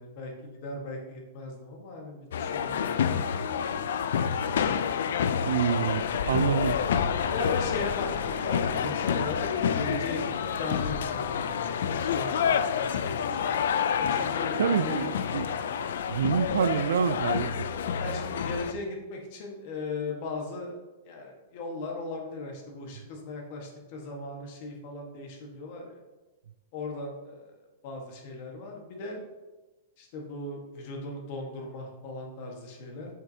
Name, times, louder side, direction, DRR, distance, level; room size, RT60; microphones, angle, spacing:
voice 1, 0.0-3.1 7.3-9.5 9.7-13.5 14.1-15.1 18.0-26.0 26.7-27.5 27.8-29.2 30.0-33.1, left 2 dB, 40° left, 1.5 m, -38 dB
sound 1, 2.3-18.7, left 7 dB, 75° left, 0.4 m, -28 dB
voice 2, 5.5-6.8 14.6-15.4 16.1-17.7, right 7 dB, 90° right, 0.3 m, -27 dB
7.5 x 5.7 x 2.8 m
supercardioid pair, 165°, 0 cm